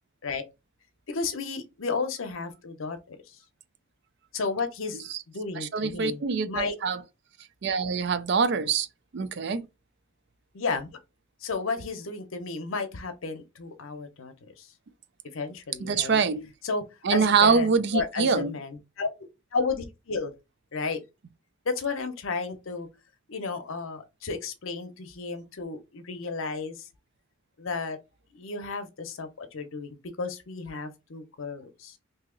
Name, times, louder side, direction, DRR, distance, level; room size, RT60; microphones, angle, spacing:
voice 1, 1.1-3.4 4.3-5.0 5.3-6.2 6.5-6.8 10.5-10.9 11.4-14.7 15.3-16.2 16.6-16.8 17.1-20.3 20.7-21.0 21.7-22.9 23.3-26.9 27.6-28.0 28.3-32.0, left 4 dB, 75° left, 0.7 m, -33 dB
voice 2, 5.6-7.0 7.6-8.9 9.1-9.7 15.8-16.5 17.0-18.6, right 5 dB, 55° right, 0.4 m, -24 dB
2.8 x 2.7 x 3.7 m
head